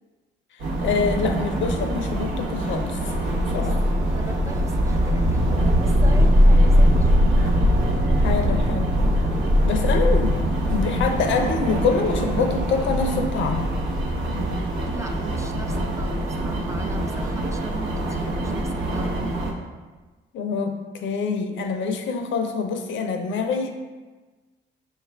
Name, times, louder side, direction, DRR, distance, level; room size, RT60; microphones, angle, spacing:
voice 1, 0.6-3.1 3.5-3.7 8.2-8.9 9.6-10.3 10.7-13.7 20.3-23.7, left 5 dB, 70° left, 5 dB, 0.5 m, -25 dB
sound 1, 0.6-19.5, right 1 dB, 80° right, 0.8 m, -27 dB
sound 2, 3.0-16.1, equal, 55° right, 0.9 m, -21 dB
voice 2, 4.1-7.3 9.3-10.0 14.8-19.3, right 2 dB, 15° right, 4 dB, 0.3 m, -39 dB
5.4 x 2.4 x 3.3 m, 1.3 s
cardioid pair, 90°, 20 cm